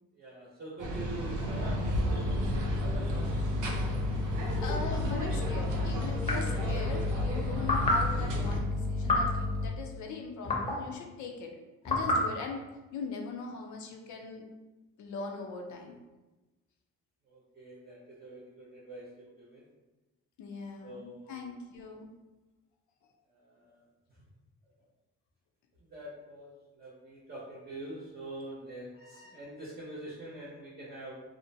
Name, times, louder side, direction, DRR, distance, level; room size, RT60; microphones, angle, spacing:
voice 1, 0.2-1.8 2.1-3.3 3.6-4.0 17.3-19.7 20.8-21.5 23.4-23.8 25.9-31.2, right 1 dB, 30° right, -6 dB, 0.7 m, -45 dB
sound 1, 0.8-8.6, right 1 dB, 85° right, 0.6 m, -34 dB
sound 2, 1.5-9.7, left 3 dB, 5° left, 0.3 m, -33 dB
voice 2, 4.6-11.5 11.8-14.5 15.0-16.0 20.4-22.1, left 4 dB, 75° left, 2 dB, 0.6 m, -40 dB
sound 3, 6.2-6.6 7.6-8.1 9.0-9.4 10.4-10.9 11.8-12.3, left 1 dB, 20° left, 0.7 m, -28 dB
2.6 x 2.1 x 2.6 m, 1.1 s
cardioid pair, 90°, 30 cm